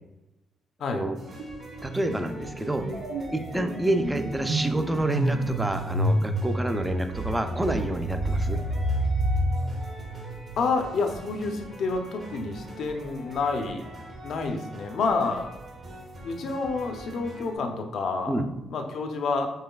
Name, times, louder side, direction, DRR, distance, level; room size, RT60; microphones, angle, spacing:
sound 1, 1.1-17.6, right 1 dB, 50° right, 1.2 m, -43 dB
sound 2, 1.4-1.7 2.0-10.8, right 1 dB, 85° right, 0.6 m, -29 dB
voice 1, 1.8-2.9 3.3-8.6 18.3-18.5, right 1 dB, 10° right, 7 dB, 0.5 m, -28 dB
voice 2, 10.6-13.8 14.2-15.5 16.2-18.3 18.7-19.5, left 4 dB, 65° left, 4 dB, 0.6 m, -28 dB
5.5 x 3.1 x 2.3 m, 0.97 s
cardioid pair, 90°, 0 cm